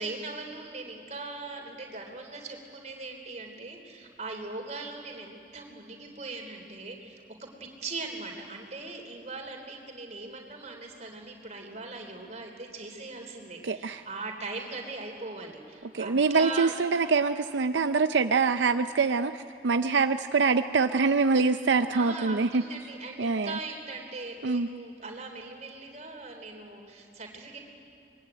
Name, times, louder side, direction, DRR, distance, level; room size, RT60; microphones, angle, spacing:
voice 1, 0.0-16.7 21.9-27.6, right 3 dB, 40° right, 2 dB, 3.6 m, -40 dB
voice 2, 13.6-14.0 15.9-22.6 23.2-23.6 24.4-24.7, right 4 dB, 80° right, 9 dB, 0.6 m, -25 dB
24.5 x 21.5 x 9.1 m, 2.4 s
head